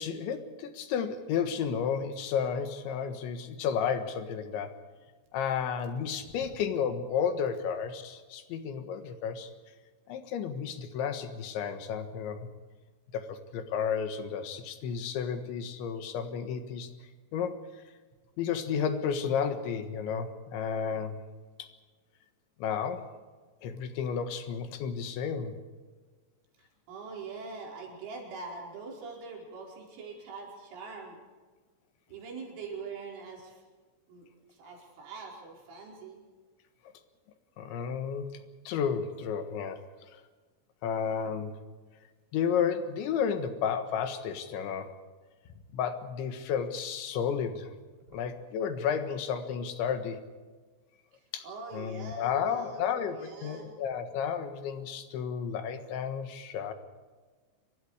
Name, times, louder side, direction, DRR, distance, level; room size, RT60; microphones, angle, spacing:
voice 1, 0.0-4.8 5.3-9.5 10.1-12.4 13.1-16.9 17.3-17.6 18.4-21.2 21.6-21.7 22.6-23.1 23.6-25.6 37.6-38.3 38.7-39.8 40.1-40.2 40.8-41.6 42.3-44.9 45.7-47.7 48.1-50.2 51.3-51.5 51.7-56.7, left 7 dB, 75° left, 8 dB, 3.7 m, -32 dB
voice 2, 26.6-31.2 32.1-33.6 34.1-34.3 34.5-36.2 48.1-48.2 51.4-53.7, right 4 dB, 75° right, -1 dB, 7.3 m, -43 dB
28.5 x 23.5 x 4.9 m, 1.4 s
omnidirectional pair, 5.5 m